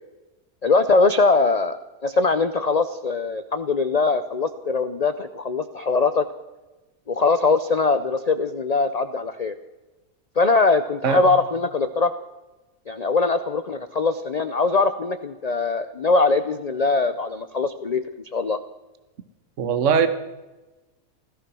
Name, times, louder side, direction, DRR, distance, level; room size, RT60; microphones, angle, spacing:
voice 1, 0.6-6.3 7.1-9.5 10.4-12.1 12.9-18.0 18.3-18.6, left 3 dB, 55° left, 0.4 m, -21 dB
voice 2, 11.0-11.4 19.6-20.1, right 6 dB, 55° right, 1.3 m, -21 dB
17.0 x 14.0 x 6.1 m
omnidirectional pair, 1.7 m